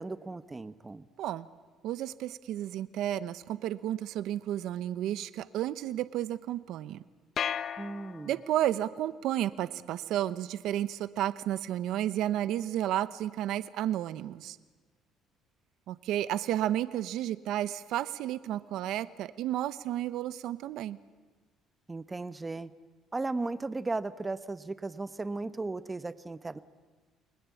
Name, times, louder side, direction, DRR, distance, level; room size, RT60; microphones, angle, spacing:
voice 1, 0.0-1.1 7.8-8.4 21.9-22.7 23.1-26.6, right 3 dB, 15° right, 14 dB, 1.0 m, -36 dB
voice 2, 1.8-7.0 8.2-14.6 15.9-21.0, right 12 dB, 70° right, 15 dB, 0.9 m, -32 dB
sound 1, 7.4-8.7, left 8 dB, 40° left, 0.9 m, -35 dB
30.0 x 21.0 x 8.5 m, 1.4 s
cardioid pair, 135°, 0 cm